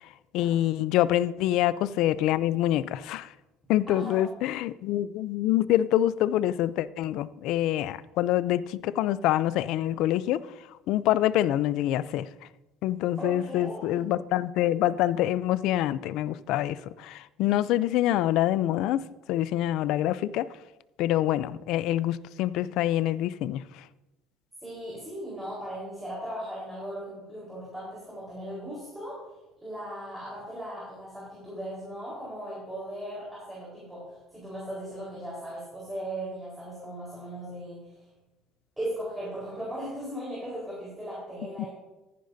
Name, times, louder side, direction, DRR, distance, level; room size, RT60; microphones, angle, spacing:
voice 1, 0.3-3.3 3.7-10.4 10.9-12.3 12.8-19.0 19.3-20.5 21.0-23.6 41.6-41.7, left 13 dB, 70° left, 17 dB, 0.4 m, -26 dB
voice 2, 3.9-4.3 13.2-14.0 24.6-29.2 29.6-37.9 38.8-41.7, right 1 dB, 5° right, -7 dB, 4.2 m, -38 dB
14.0 x 10.0 x 2.7 m, 1.0 s
cardioid pair, 130°, 0 cm